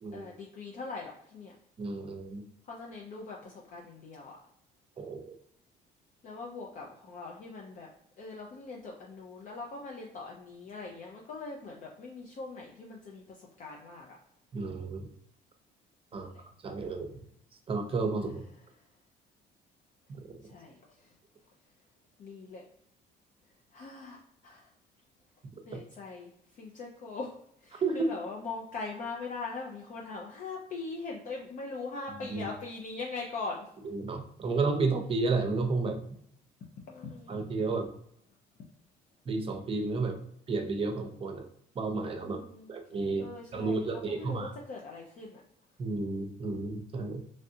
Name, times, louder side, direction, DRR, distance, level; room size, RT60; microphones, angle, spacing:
voice 1, 0.1-1.5 2.6-4.4 6.2-7.9 8.2-14.2 16.1-16.4 18.2-18.4 20.4-21.1 22.2-22.6 23.7-24.7 25.6-27.4 27.6-33.7 36.9-37.5 42.2-42.7 43.2-45.4, left 3 dB, 50° left, -1 dB, 0.6 m, -41 dB
voice 2, 1.8-2.4 5.0-5.3 14.5-15.1 16.1-16.3 16.6-17.2 17.7-18.4 20.1-20.2 27.8-28.1 32.3-32.5 33.8-36.0 37.3-37.9 39.3-40.2 40.5-41.4 41.7-42.4 42.7-43.3 43.5-44.5 45.8-47.2, right 3 dB, 35° right, 5 dB, 0.6 m, -31 dB
3.3 x 2.5 x 2.7 m, 0.68 s
cardioid pair, 110°, 17 cm